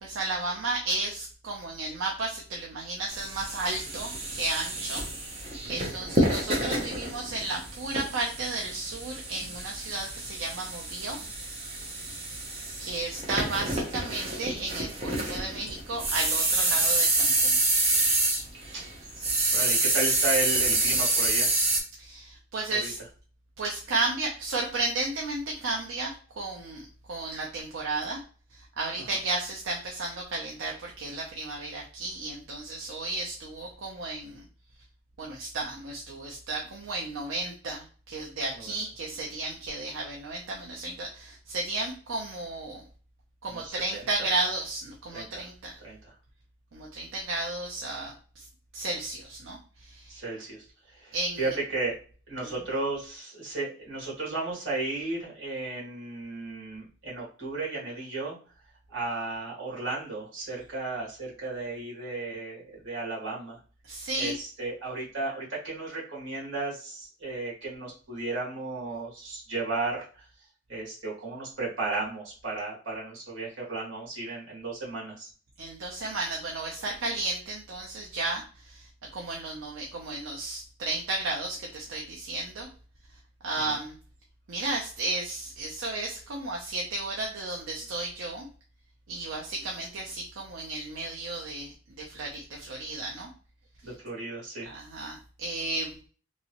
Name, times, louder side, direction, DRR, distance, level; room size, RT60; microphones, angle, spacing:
voice 1, 0.0-5.0 5.3-11.2 12.8-17.6 19.2-19.5 22.0-23.0 23.6-26.8 27.1-28.2 28.5-34.4 35.2-42.8 43.4-45.8 46.7-48.5 48.7-50.1 51.1-51.5 63.8-64.3 75.6-82.7 83.4-84.0 84.5-88.5 89.1-93.3 94.6-96.0, right 2 dB, 80° right, -2 dB, 0.6 m, -33 dB
sound 1, 3.1-19.0 19.2-21.8, right 2 dB, 30° right, 0.7 m, -28 dB
voice 2, 18.7-19.1 19.5-21.6 22.7-22.9 29.0-29.2 38.5-38.7 43.5-44.1 45.1-45.4 45.8-46.1 50.1-52.0 52.3-58.3 58.9-63.6 64.2-70.2 70.7-75.3 83.6-83.8 93.8-94.7, right 3 dB, 65° right, -4 dB, 1.6 m, -34 dB
3.0 x 2.7 x 2.8 m, 0.40 s
head